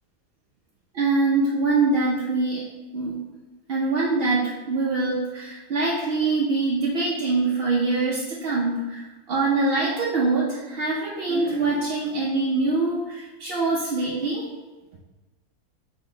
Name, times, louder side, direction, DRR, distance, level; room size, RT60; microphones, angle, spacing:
voice 1, 0.9-2.6 2.9-3.2 3.7-14.5, right 3 dB, 60° right, -4 dB, 0.6 m, -24 dB
4.4 x 2.9 x 3.8 m, 1.2 s
omnidirectional pair, 1.5 m